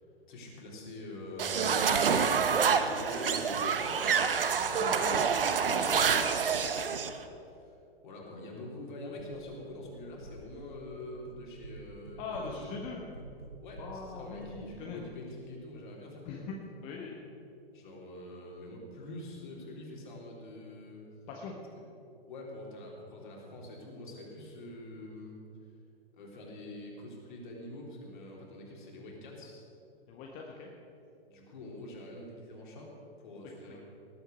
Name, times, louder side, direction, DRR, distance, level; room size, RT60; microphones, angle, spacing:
voice 1, 0.3-1.9 2.8-7.2 7.6-7.8 8.0-12.7 13.6-16.5 17.7-21.0 21.7-21.8 22.3-25.4 26.1-29.6 31.2-32.9 33.2-33.8, left 1 dB, 50° left, -1 dB, 3.7 m, -45 dB
sound 1, 1.4-7.1, right 6 dB, 65° right, 1.0 m, -27 dB
voice 2, 4.8-5.3 12.2-13.0 13.8-15.0 16.2-17.2 21.3-21.5 30.1-30.7 33.7-33.8, left 4 dB, 25° left, -1 dB, 1.4 m, -41 dB
sound 2, 9.2-9.7 9.9-10.7 11.0-11.8 12.0-14.5, right 3 dB, 80° right, 2.2 m, -48 dB
18.5 x 8.0 x 6.5 m, 2.7 s
figure-of-eight pair, 110°, 31 cm